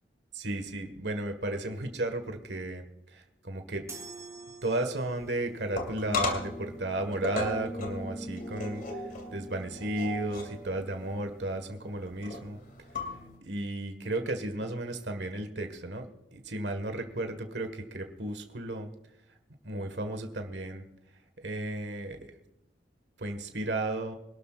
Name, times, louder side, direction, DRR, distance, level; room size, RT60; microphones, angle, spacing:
voice 1, 0.3-3.8 4.6-12.6 13.4-18.9 19.6-20.8 21.4-22.3 23.2-24.1, right 1 dB, 70° right, 6 dB, 1.7 m, -34 dB
sound 1, 3.9-5.4, right 4 dB, 15° right, 2.9 m, -46 dB
sound 2, 5.2-13.4, left 2 dB, 50° left, 2.7 m, -37 dB
25.5 x 12.5 x 2.5 m, 0.89 s
head